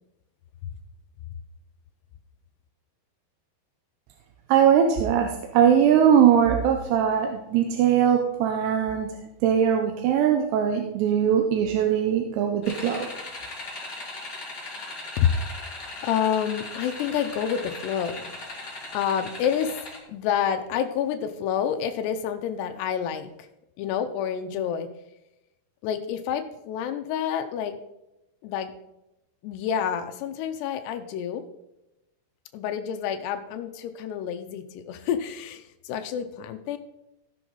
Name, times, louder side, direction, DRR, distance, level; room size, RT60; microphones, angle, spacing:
voice 1, 4.5-9.1 9.4-13.1, right 8 dB, 85° right, 3 dB, 2.9 m, -21 dB
sound 1, 12.6-20.0, left 2 dB, 30° left, 1.8 m, -38 dB
voice 2, 16.0-18.3 18.9-19.8 20.1-23.5 23.8-24.9 25.8-27.8 28.4-28.7 29.4-31.4 32.5-36.8, left 8 dB, 85° left, 8 dB, 2.7 m, -28 dB
16.0 x 6.2 x 3.9 m, 0.92 s
omnidirectional pair, 4.7 m